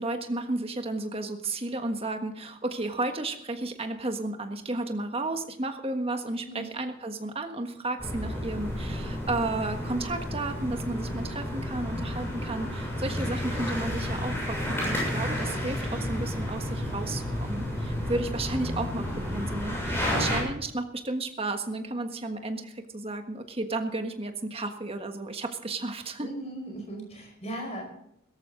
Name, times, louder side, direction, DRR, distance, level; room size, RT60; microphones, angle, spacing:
voice 1, 0.0-26.3, right 2 dB, 30° right, 6 dB, 1.5 m, -33 dB
sound 1, 8.0-20.4, left 1 dB, 10° left, 7.1 m, -31 dB
voice 2, 20.1-20.4 26.2-27.8, right 1 dB, 35° left, 2 dB, 5.2 m, -37 dB
17.0 x 14.0 x 3.9 m, 0.76 s
head